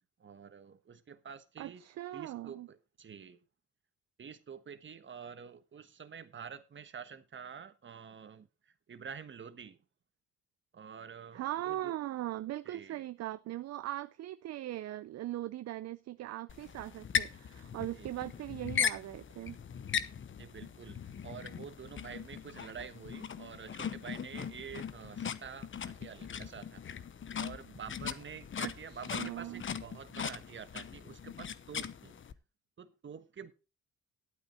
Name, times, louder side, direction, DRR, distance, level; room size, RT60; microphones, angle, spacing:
voice 1, 0.2-1.8 2.1-3.4 4.2-9.8 10.7-11.9 12.6-13.1 17.9-18.3 20.4-26.8 27.4-32.2 32.8-33.5, right 7 dB, 40° right, 1.3 m, -48 dB
voice 2, 1.6-2.7 11.3-19.6 29.1-29.6, right 14 dB, 60° right, 0.5 m, -39 dB
sound 1, 16.5-32.3, left 8 dB, 40° left, 0.9 m, -39 dB
11.5 x 8.9 x 4.3 m
cardioid pair, 90°, 30 cm